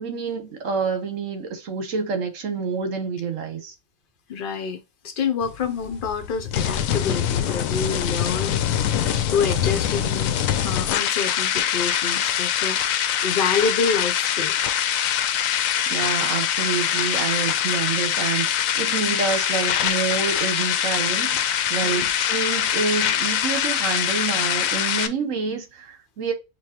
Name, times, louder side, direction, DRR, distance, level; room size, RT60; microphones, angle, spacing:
voice 1, 0.0-3.7 15.9-26.3, right 5 dB, 70° right, 1.3 m, -28 dB
voice 2, 4.3-4.8 5.0-8.7 9.3-14.5 21.8-22.1, left 5 dB, 50° left, 0.7 m, -27 dB
sound 1, 5.4-25.1, left 10 dB, 80° left, 1.0 m, -23 dB
6.7 x 2.3 x 2.9 m
omnidirectional pair, 1.4 m